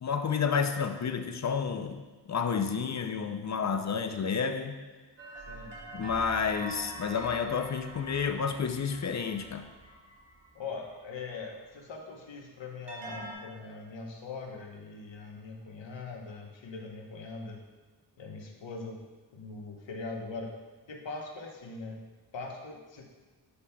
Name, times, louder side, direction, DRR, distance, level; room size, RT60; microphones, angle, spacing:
voice 1, 0.0-2.0 2.3-4.8 5.9-9.7, left 6 dB, 40° left, 7 dB, 0.4 m, -30 dB
sound 1, 5.2-11.4 12.9-13.3, right 2 dB, 70° right, 1.3 m, -45 dB
voice 2, 5.5-5.8 10.5-17.6 18.2-19.0 19.3-20.5 20.9-22.0 22.3-23.0, left 3 dB, 80° left, 1 dB, 1.0 m, -41 dB
8.5 x 5.5 x 2.2 m, 1.3 s
wide cardioid pair, 75°, 44 cm